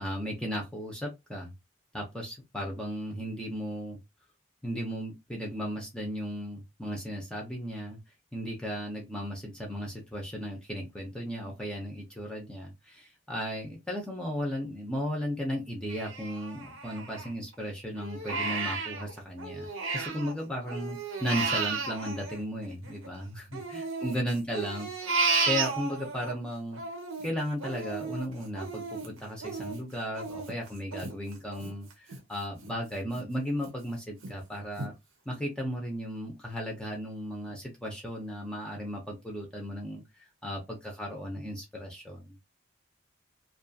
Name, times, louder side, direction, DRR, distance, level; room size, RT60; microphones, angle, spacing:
voice 1, 0.0-1.5 1.9-4.0 4.6-8.0 8.3-19.7 19.9-26.8 27.2-34.9 35.3-42.3, equal, 5° left, -1 dB, 0.5 m, -35 dB
Crying sobbing, 15.9-17.5 18.0-20.3 20.6-23.1 23.5-26.3 26.7-32.2 32.6-32.7 33.2-33.7 34.2-34.3 34.8-34.9, right 4 dB, 90° right, 0.8 m, -33 dB
2.5 x 2.3 x 2.6 m, 0.22 s
head